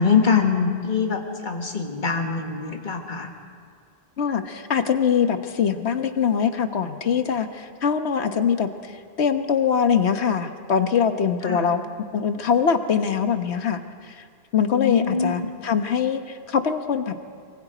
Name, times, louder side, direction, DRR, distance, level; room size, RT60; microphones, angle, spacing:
voice 1, 0.0-3.3 11.4-11.7 14.7-15.5, left 5 dB, 45° left, 3 dB, 2.0 m, -23 dB
voice 2, 4.2-8.7 9.2-11.8 12.1-14.2 14.5-17.1, left 7 dB, 85° left, 8 dB, 1.4 m, -23 dB
24.0 x 23.5 x 5.1 m, 2.1 s
omnidirectional pair, 1.1 m